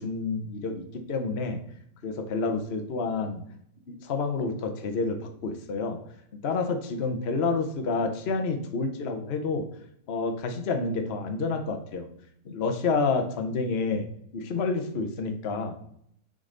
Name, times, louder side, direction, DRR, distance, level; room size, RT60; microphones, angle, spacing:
voice 1, 0.0-1.6 2.0-3.4 3.9-6.0 6.4-9.7 10.1-12.1 12.4-14.1 14.3-15.8, left 4 dB, 45° left, 5 dB, 1.0 m, -29 dB
9.5 x 4.0 x 3.8 m, 0.71 s
omnidirectional pair, 1.8 m